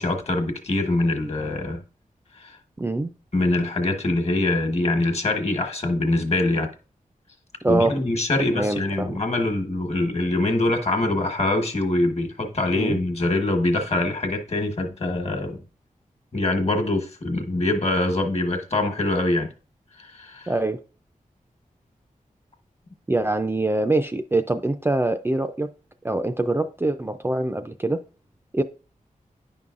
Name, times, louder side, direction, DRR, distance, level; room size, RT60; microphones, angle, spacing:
voice 1, 0.0-1.8 2.4-2.6 3.3-6.7 7.7-15.6 16.3-19.5 20.0-20.5, left 2 dB, 45° left, 1.2 m, -24 dB
voice 2, 2.8-3.1 7.6-8.0 8.5-9.2 12.7-13.0 20.5-20.8 23.1-25.7 26.0-28.0 28.5-28.6, right 2 dB, 15° right, 0.4 m, -24 dB
9.7 x 5.4 x 2.4 m
wide cardioid pair, 110°, 14 cm